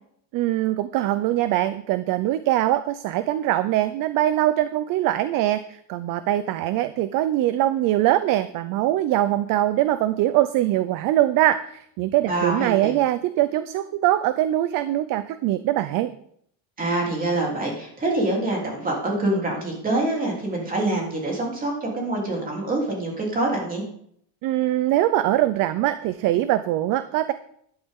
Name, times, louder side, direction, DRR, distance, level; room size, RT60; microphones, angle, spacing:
voice 1, 0.3-16.1 24.4-27.3, right 14 dB, 45° right, 12 dB, 0.5 m, -22 dB
voice 2, 12.2-12.9 16.8-23.8, right 2 dB, 15° right, -2 dB, 3.2 m, -25 dB
12.0 x 11.5 x 3.7 m, 0.67 s
cardioid pair, 165°, 48 cm